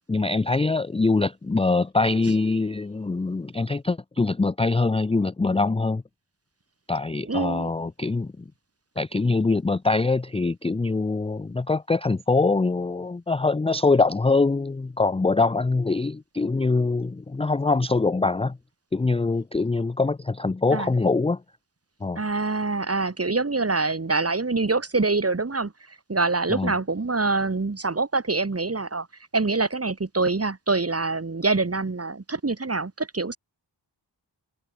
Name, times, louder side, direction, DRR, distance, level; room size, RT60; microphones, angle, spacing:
voice 1, 0.1-6.0 6.9-8.4 9.0-18.6 18.9-21.4 22.0-22.2 26.5-26.7, left 3 dB, 15° left, 0.4 m, -23 dB
voice 2, 7.3-7.7 20.7-20.9 22.2-25.7 26.1-29.1 29.3-33.4, right 3 dB, 35° right, 2.3 m, -25 dB
wide cardioid pair, 85°, 43 cm